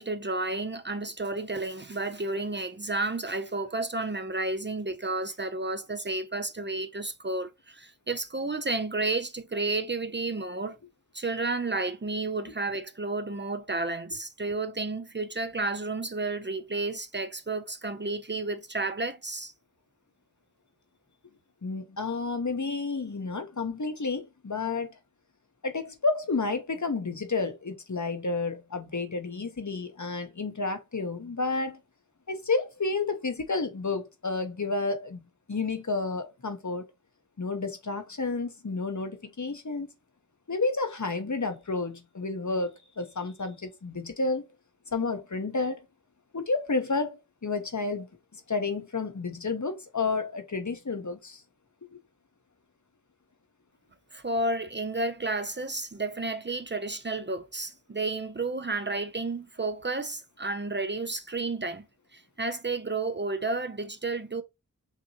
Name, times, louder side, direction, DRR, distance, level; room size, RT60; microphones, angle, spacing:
voice 1, 0.0-10.8 11.1-19.5 54.1-61.9 62.1-64.4, right 2 dB, 30° right, 0.5 m, -31 dB
voice 2, 21.6-25.0 25.6-31.8 32.3-35.2 35.5-36.8 37.4-39.9 40.5-44.5 44.9-45.8 46.3-48.1 48.3-51.4 51.8-52.0, left 3 dB, 55° left, 0.9 m, -31 dB
5.9 x 2.8 x 2.8 m
wide cardioid pair, 40°, 35 cm